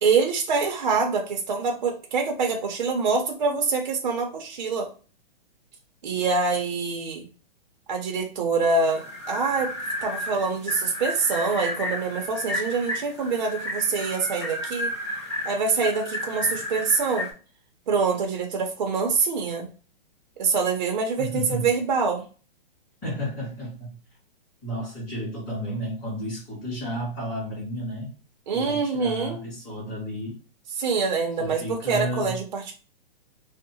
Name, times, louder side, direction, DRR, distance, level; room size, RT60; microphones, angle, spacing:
voice 1, 0.0-4.9 6.0-7.3 7.9-9.7 10.0-14.9 15.4-17.3 17.9-19.7 20.4-22.2 28.5-29.4 30.8-32.7, right 4 dB, 50° right, 2 dB, 0.6 m, -25 dB
sound 1, 8.8-17.3, left 1 dB, 30° left, 0.5 m, -32 dB
voice 2, 21.2-21.7 23.0-24.0 24.6-28.1 28.5-30.4 31.4-32.4, equal, 10° left, -14 dB, 1.3 m, -32 dB
2.7 x 2.1 x 2.6 m, 0.36 s
hypercardioid pair, 180°, 29 cm